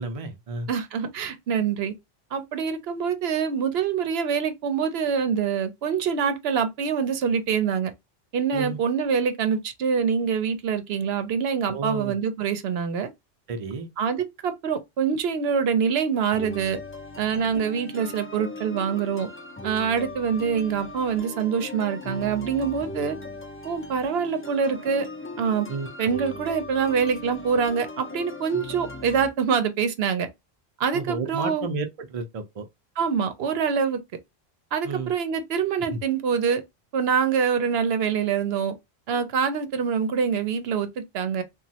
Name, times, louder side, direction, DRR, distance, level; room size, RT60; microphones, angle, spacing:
voice 1, 0.0-0.7 8.5-8.8 11.7-12.1 13.5-13.9 25.7-25.9 30.9-32.6 34.8-35.1 35.9-36.0, right 4 dB, 40° right, 0.5 m, -31 dB
voice 2, 0.7-1.9 2.3-7.9 8.3-13.1 14.0-16.8 17.2-19.3 19.6-23.2 23.6-25.1 25.4-25.7 26.0-30.3 30.8-31.7 33.0-34.0 34.7-36.6 36.9-38.7 39.1-41.4, right 6 dB, 80° right, 0.8 m, -25 dB
sound 1, 16.3-29.3, left 2 dB, 20° left, 0.4 m, -39 dB
3.0 x 2.4 x 2.7 m
omnidirectional pair, 1.0 m